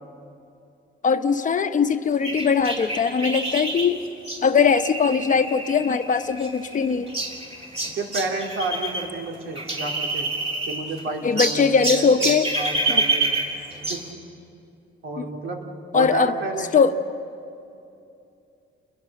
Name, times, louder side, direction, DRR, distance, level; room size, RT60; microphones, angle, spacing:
voice 1, 1.0-4.0 4.4-7.1 11.2-12.5 12.9-13.0 15.2-15.3 15.9-16.3 16.7-16.9, left 6 dB, 40° left, 8 dB, 1.0 m, -20 dB
sound 1, 2.2-9.1 9.3-11.0 11.4-14.1, right 2 dB, 30° right, 3.5 m, -27 dB
voice 2, 7.8-10.3 10.7-13.3 13.9-14.1 15.0-15.7 15.9-16.7, right 3 dB, 75° right, 2 dB, 2.9 m, -31 dB
29.5 x 21.5 x 6.6 m, 2.6 s
cardioid pair, 120°, 21 cm